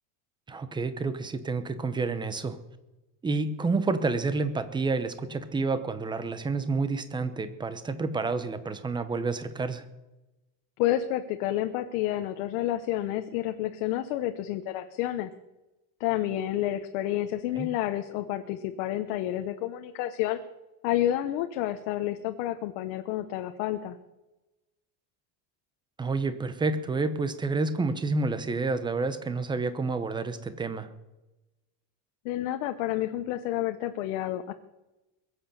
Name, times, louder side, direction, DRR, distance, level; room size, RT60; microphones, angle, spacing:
voice 1, 0.5-2.6 3.2-9.8 17.5-17.7 26.0-30.9, right 3 dB, 10° right, 11 dB, 0.8 m, -29 dB
voice 2, 10.8-15.3 16.0-20.4 20.8-24.0 32.2-34.5, left 13 dB, 80° left, 7 dB, 1.1 m, -29 dB
22.0 x 7.9 x 6.9 m, 1.0 s
cardioid pair, 170°, 41 cm